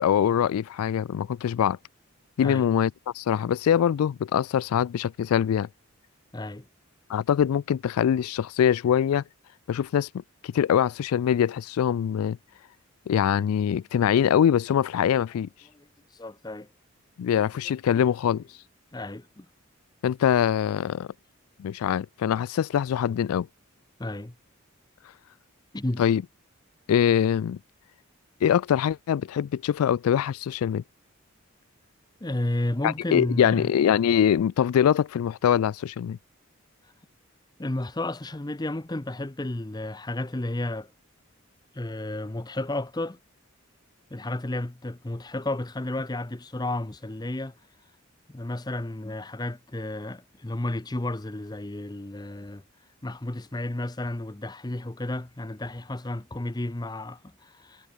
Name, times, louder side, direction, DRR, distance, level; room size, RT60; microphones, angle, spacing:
voice 1, 0.0-1.8 2.4-5.7 7.1-9.2 9.7-10.1 10.4-12.4 13.1-15.5 17.2-18.4 20.0-21.1 21.6-23.5 26.0-26.2 26.9-27.6 28.4-30.8 32.8-36.2, left 9 dB, 85° left, 0.3 m, -23 dB
voice 2, 6.3-6.6 15.7-15.9 16.1-16.7 17.6-17.8 18.9-19.5 24.0-24.3 25.7-26.0 32.2-33.7 37.6-40.9 41.7-43.2 44.1-47.5 48.3-52.6 53.0-57.9, left 1 dB, 20° left, 0.7 m, -32 dB
head